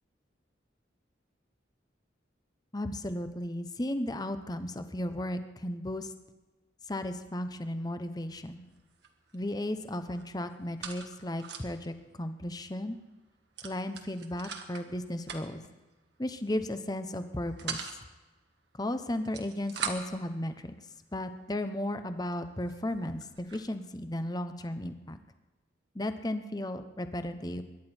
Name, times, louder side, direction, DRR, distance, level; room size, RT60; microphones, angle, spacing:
voice 1, 2.7-6.1 6.9-8.6 9.3-13.0 13.6-15.6 16.2-18.0 18.8-20.8 21.1-25.2 25.9-27.6, left 1 dB, 20° left, 9 dB, 0.9 m, -35 dB
sound 1, 8.1-8.4 8.7-9.5 9.8-11.9 12.3-12.4 12.6-12.8 13.6-14.9 15.2-15.7 16.5-16.8 17.2-18.0 19.1-20.2 21.0-21.1 21.7-21.8 22.3-22.4 22.6-23.7, right 6 dB, 65° right, 1.6 m, -41 dB
23.0 x 11.0 x 4.4 m, 1.2 s
head